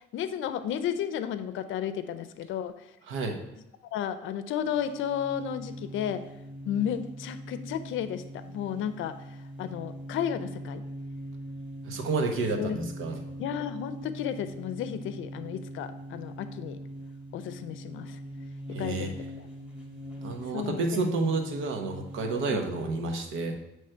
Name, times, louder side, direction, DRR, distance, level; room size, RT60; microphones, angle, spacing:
voice 1, 0.0-2.7 3.9-6.2 6.7-9.1 9.6-10.8 12.5-12.8 13.4-16.8 17.3-18.2 18.8-19.5 20.5-21.0 22.4-22.6, left 9 dB, 80° left, 11 dB, 0.5 m, -33 dB
voice 2, 3.1-3.4 11.8-13.2 18.7-19.1 20.2-23.6, right 3 dB, 90° right, 4 dB, 0.9 m, -30 dB
sound 1, 4.7-22.9, right 1 dB, 5° right, 1.8 m, -42 dB
7.7 x 3.2 x 4.4 m, 0.95 s
cardioid pair, 90°, 20 cm